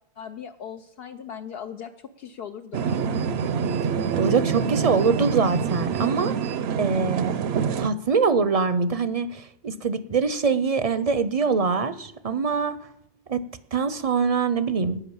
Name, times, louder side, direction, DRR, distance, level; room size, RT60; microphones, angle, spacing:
voice 1, 0.2-3.2, left 8 dB, 70° left, 6 dB, 0.8 m, -39 dB
sound 1, 2.7-7.9, right 6 dB, 75° right, 0.8 m, -26 dB
voice 2, 4.1-7.4 7.8-12.8 13.3-15.0, right 5 dB, 45° right, 14 dB, 0.5 m, -24 dB
10.5 x 9.4 x 7.1 m, 0.79 s
omnidirectional pair, 1.1 m